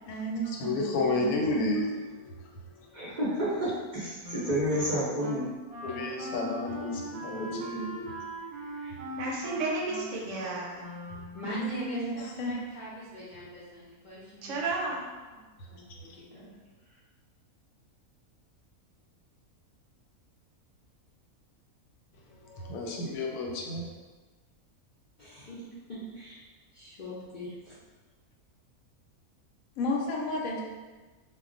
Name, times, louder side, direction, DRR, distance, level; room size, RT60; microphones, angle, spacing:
voice 1, 0.1-1.7 11.4-12.6 29.8-30.7, equal, 70° left, -1 dB, 0.9 m, -33 dB
voice 2, 0.6-2.5 5.8-8.2 9.0-9.2 11.1-11.3 13.4-13.5 22.4-23.9, left 2 dB, 90° left, 0 dB, 1.1 m, -32 dB
voice 3, 2.9-5.5 7.3-8.0, equal, 45° right, -9 dB, 0.6 m, -30 dB
Wind instrument woodwind instrument, 4.2-11.7, right 1 dB, 85° right, 1.1 m, -41 dB
voice 4, 8.7-10.9 14.4-15.1, right 3 dB, 65° right, -2 dB, 0.9 m, -33 dB
voice 5, 11.3-14.7 15.3-15.4 15.7-16.5 16.8-17.0 25.2-25.6 25.9-26.4 26.7-27.7, equal, 55° left, -10 dB, 0.5 m, -42 dB
2.3 x 2.2 x 3.7 m, 1.3 s
omnidirectional pair, 1.5 m